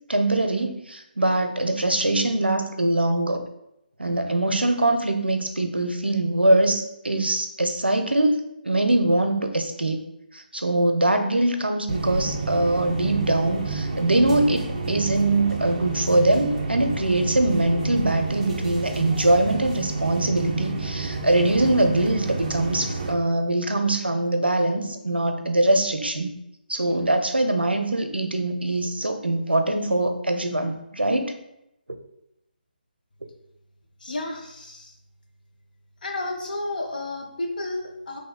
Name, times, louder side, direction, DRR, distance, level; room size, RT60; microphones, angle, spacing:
voice 1, 0.1-3.4 4.0-10.1 10.3-26.3 26.7-31.3, right 1 dB, 85° right, 6 dB, 0.5 m, -23 dB
sound 1, 11.9-23.1, right 3 dB, 35° right, 0.5 m, -29 dB
voice 2, 34.0-34.9 36.0-38.2, left 2 dB, 55° left, 2 dB, 0.6 m, -31 dB
3.9 x 3.0 x 2.2 m, 0.83 s
figure-of-eight pair, 150°, 5 cm